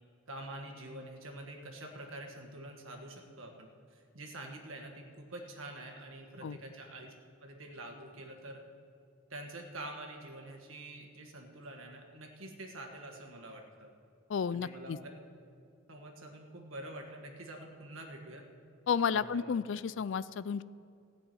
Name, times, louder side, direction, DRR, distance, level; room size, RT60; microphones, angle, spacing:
voice 1, 0.3-7.1 7.4-8.6 9.3-13.9 14.5-15.1 15.9-18.4 19.1-19.6, right 1 dB, 70° right, 2 dB, 1.7 m, -46 dB
voice 2, 14.3-15.0 18.9-20.6, left 6 dB, 60° left, 17 dB, 0.3 m, -32 dB
14.5 x 6.3 x 9.0 m, 2.5 s
head